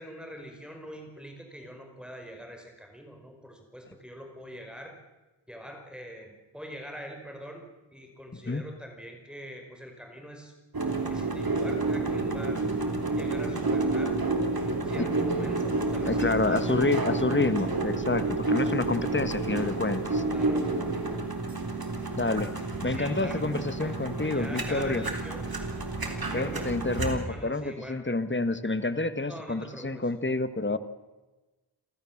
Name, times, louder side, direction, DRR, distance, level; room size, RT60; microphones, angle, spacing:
voice 1, 0.0-5.0 5.5-7.6 7.9-10.5 11.1-12.6 13.2-14.2 14.6-16.6 20.3-20.7 22.9-25.4 26.3-26.8 27.1-28.0 29.3-30.1, equal, ahead, 3 dB, 4.9 m, -44 dB
voice 2, 8.3-8.6 15.0-15.1 16.0-20.2 22.2-22.5 22.8-25.0 26.3-30.8, left 3 dB, 25° left, 12 dB, 1.6 m, -28 dB
sound 1, 10.7-27.2, right 3 dB, 45° right, 3.7 m, -29 dB
29.5 x 14.0 x 7.3 m, 1.2 s
cardioid pair, 45°, 48 cm